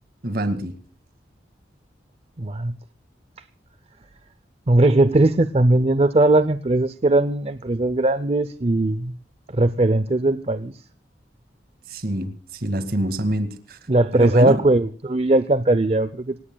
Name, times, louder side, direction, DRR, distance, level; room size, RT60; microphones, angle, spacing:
voice 1, 0.2-0.8 11.9-13.8 14.1-14.6, right 1 dB, 55° right, 2.2 m, -26 dB
voice 2, 2.4-2.7 4.7-9.1 9.5-10.8 13.9-16.4, right 2 dB, 35° right, 0.6 m, -19 dB
27.0 x 17.5 x 2.3 m
head